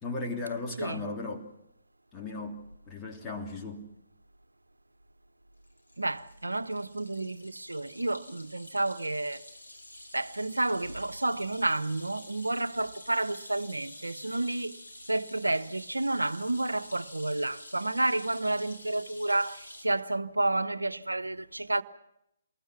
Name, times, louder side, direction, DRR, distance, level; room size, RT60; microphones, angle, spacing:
voice 1, 0.0-1.5 2.1-3.9, left 3 dB, 15° left, 3.0 m, -36 dB
sound 1, 5.6-19.8, left 1 dB, 90° left, 4.2 m, -49 dB
voice 2, 6.0-9.4 10.1-14.8 15.1-21.8, right 2 dB, 80° right, 0.9 m, -30 dB
28.5 x 21.0 x 6.1 m
figure-of-eight pair, 135°, 0 cm